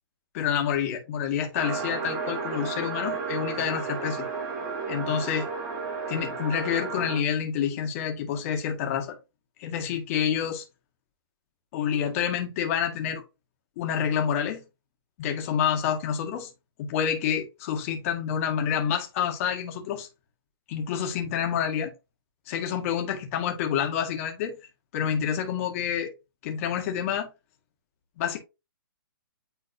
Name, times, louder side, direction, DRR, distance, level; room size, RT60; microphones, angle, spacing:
voice 1, 0.3-4.3 4.9-5.4 6.1-9.2 9.6-10.6 11.7-13.2 13.8-14.6 15.2-16.5 16.8-20.1 20.7-21.9 22.5-24.6 24.9-26.1 26.4-27.3 28.2-28.4, left 8 dB, 40° left, 2.0 m, -28 dB
sound 1, 1.5-7.2, right 5 dB, 35° right, 2.5 m, -33 dB
9.5 x 3.9 x 2.8 m
hypercardioid pair, 140°, 12 cm